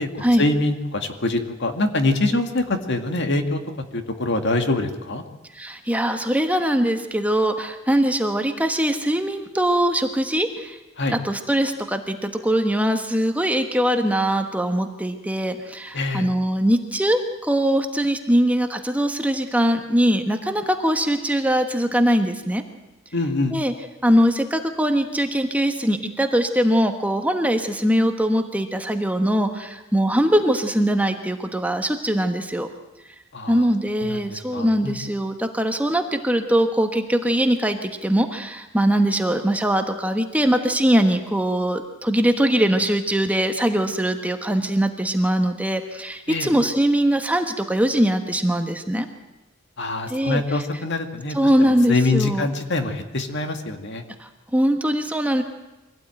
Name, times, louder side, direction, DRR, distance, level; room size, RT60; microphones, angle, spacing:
voice 1, 0.0-3.6 3.9-5.2 11.0-11.2 15.9-16.3 23.1-23.5 33.3-33.7 34.0-35.0 46.3-46.5 49.8-54.0, left 2 dB, 60° left, 6 dB, 2.1 m, -24 dB
voice 2, 5.5-10.8 11.1-22.6 23.5-23.7 24.0-32.7 33.5-49.1 50.1-50.4 51.3-52.5 54.2-55.4, equal, 5° right, 5 dB, 1.3 m, -21 dB
24.0 x 17.0 x 9.1 m, 1.1 s
head